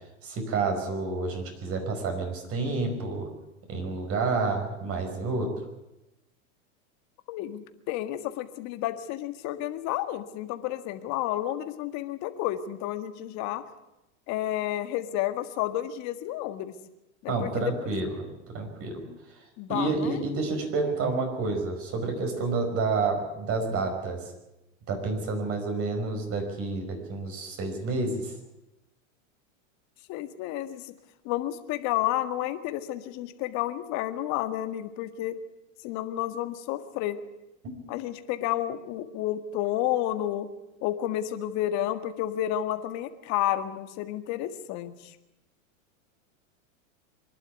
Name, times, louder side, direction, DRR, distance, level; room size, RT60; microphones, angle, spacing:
voice 1, 0.2-3.3 3.7-5.5 17.3-19.0 19.7-24.2 24.9-28.3, right 3 dB, 35° right, 4 dB, 5.3 m, -29 dB
voice 2, 7.3-13.6 14.3-16.7 17.2-17.7 19.1-19.2 19.6-20.2 30.1-30.9 31.2-35.4 35.8-37.2 37.9-40.5 40.8-45.1, left 13 dB, 45° left, 9 dB, 1.8 m, -31 dB
24.5 x 11.5 x 9.6 m, 0.94 s
supercardioid pair, 135°, 40 cm